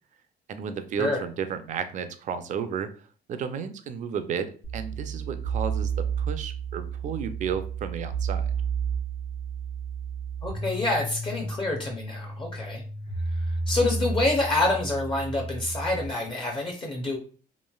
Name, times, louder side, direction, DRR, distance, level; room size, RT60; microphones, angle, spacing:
voice 1, 0.5-2.9 3.3-8.5, right 7 dB, 45° right, 10 dB, 0.4 m, -32 dB
sound 1, 4.6-16.1, right 4 dB, 90° left, 1.0 m, -31 dB
voice 2, 10.4-12.8 13.3-17.2, left 2 dB, 30° left, 1 dB, 0.6 m, -27 dB
3.1 x 2.5 x 2.3 m, 0.41 s
cardioid pair, 110°, 17 cm